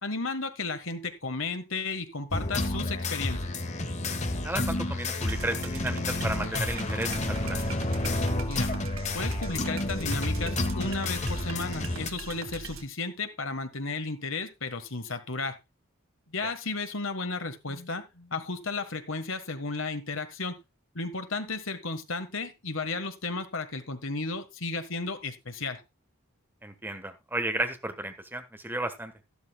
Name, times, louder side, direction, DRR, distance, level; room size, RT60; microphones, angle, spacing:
voice 1, 0.0-3.5 8.5-8.7 9.1-15.6 16.3-20.6 20.9-25.8, left 3 dB, 65° left, 9 dB, 1.6 m, -34 dB
sound 1, 2.3-12.1, left 2 dB, 35° left, 1.3 m, -30 dB
voice 2, 4.4-7.6 16.4-16.5 26.6-29.1, right 1 dB, 10° right, 7 dB, 1.3 m, -33 dB
sound 2, 5.2-12.8, right 3 dB, 70° right, 1.7 m, -41 dB
12.5 x 12.0 x 2.3 m, 0.23 s
head